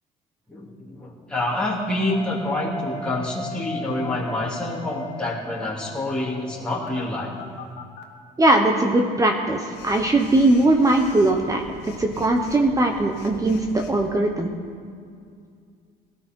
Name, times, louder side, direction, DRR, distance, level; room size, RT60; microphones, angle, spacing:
voice 1, 0.5-7.3, left 1 dB, 5° left, -6 dB, 3.0 m, -27 dB
sound 1, 2.1-7.3, left 2 dB, 30° left, 1.3 m, -37 dB
Telephone, 6.7-8.0 9.7-14.1, left 5 dB, 90° left, 1.4 m, -42 dB
voice 2, 8.4-14.5, right 2 dB, 20° right, 3 dB, 1.2 m, -20 dB
17.5 x 12.5 x 4.6 m, 2.2 s
cardioid pair, 110°, 17 cm